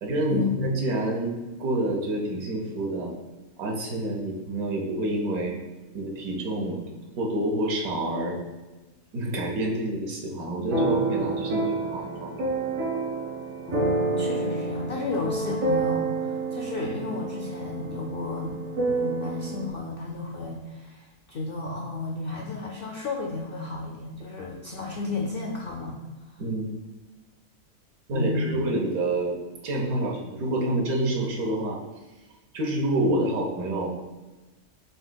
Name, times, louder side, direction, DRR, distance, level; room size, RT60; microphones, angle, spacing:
voice 1, 0.0-3.1 3.6-5.5 5.9-6.8 7.2-8.4 9.1-12.5 26.4-26.7 28.1-29.4 29.6-31.8 32.5-33.9, right 1 dB, 80° right, -1 dB, 1.3 m, -28 dB
sound 1, 10.7-19.7, right 3 dB, 60° right, 1.2 m, -28 dB
voice 2, 13.7-18.6 18.9-26.0 28.1-28.5, left 3 dB, 80° left, 0 dB, 0.5 m, -33 dB
6.8 x 2.9 x 2.2 m, 1.2 s
omnidirectional pair, 1.5 m